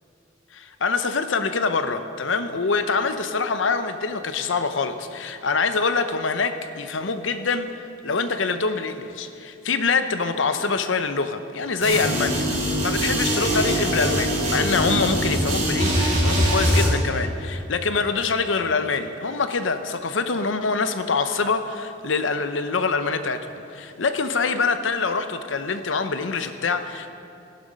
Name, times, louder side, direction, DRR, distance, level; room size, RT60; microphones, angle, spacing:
voice 1, 0.5-12.5 12.8-27.1, left 4 dB, 90° left, 9 dB, 0.8 m, -25 dB
sound 1, 11.8-16.9, equal, 35° right, 4.0 m, -22 dB
14.0 x 11.5 x 5.2 m, 2.7 s
head